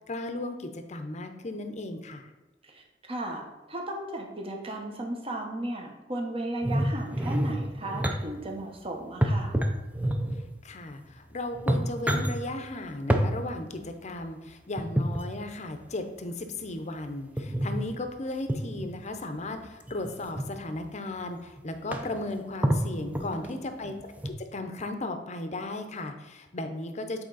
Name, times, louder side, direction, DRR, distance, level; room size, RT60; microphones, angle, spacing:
voice 1, 0.1-2.3 10.6-27.2, left 2 dB, 40° left, 7 dB, 0.7 m, -36 dB
voice 2, 2.6-3.4 3.7-9.5 23.0-23.7, right 1 dB, 35° right, 2 dB, 1.1 m, -35 dB
sound 1, 6.6-8.2 9.2-10.5 11.2-11.3 11.5-12.3 13.1-13.3 14.8-15.2 17.4-17.8 18.5-18.9 19.9-20.4 21.2-21.3 21.6-21.7 21.9-22.2 22.6-23.5 24.2-24.3, right 1 dB, 10° right, 0.5 m, -27 dB
7.7 x 4.3 x 4.0 m, 1.1 s
head